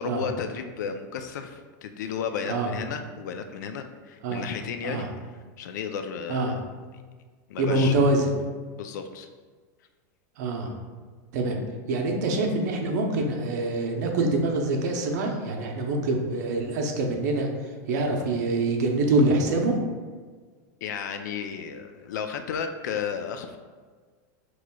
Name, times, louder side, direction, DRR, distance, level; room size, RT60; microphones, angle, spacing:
voice 1, 0.0-5.1 5.6-6.6 7.5-8.0 8.8-9.3 20.8-23.6, left 7 dB, 85° left, 7 dB, 0.4 m, -33 dB
voice 2, 7.6-8.3 10.4-10.7 11.3-11.6 11.9-17.5 17.9-19.8, right 2 dB, 75° right, 2 dB, 0.7 m, -25 dB
6.0 x 3.1 x 2.3 m, 1.5 s
supercardioid pair, 155°, 9 cm